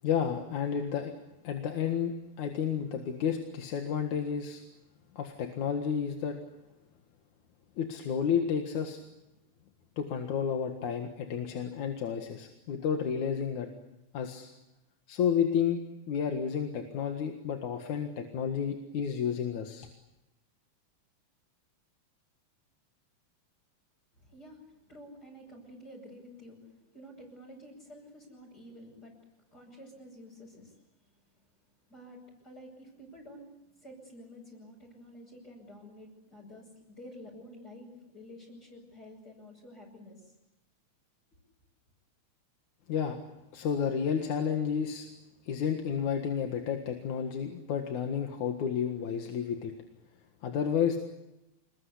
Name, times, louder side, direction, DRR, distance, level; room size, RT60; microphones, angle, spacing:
voice 1, 0.0-1.1 1.4-4.6 5.1-6.4 7.8-9.0 10.0-13.7 14.1-14.5 15.1-15.8 16.1-19.9 42.9-43.2 43.5-45.1 45.4-49.7 50.4-51.0, left 7 dB, 75° left, 4 dB, 3.1 m, -31 dB
voice 2, 24.1-29.2 29.5-30.8 31.9-33.5 33.8-40.3, equal, 30° left, -4 dB, 7.5 m, -50 dB
27.5 x 21.5 x 8.4 m, 0.95 s
omnidirectional pair, 3.4 m